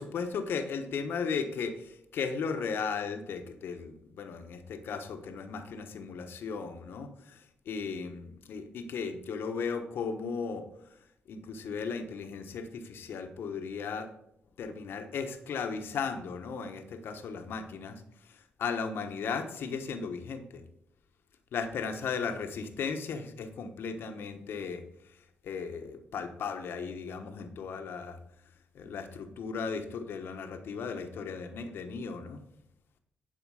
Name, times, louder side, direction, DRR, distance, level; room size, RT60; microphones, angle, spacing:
voice 1, 0.0-7.4 7.7-10.7 11.3-14.1 14.6-18.0 18.6-20.6 21.5-24.8 25.4-28.2 28.7-32.4, left 5 dB, 75° left, 6 dB, 1.1 m, -36 dB
11.5 x 4.8 x 4.9 m, 0.79 s
cardioid pair, 75°, 4 cm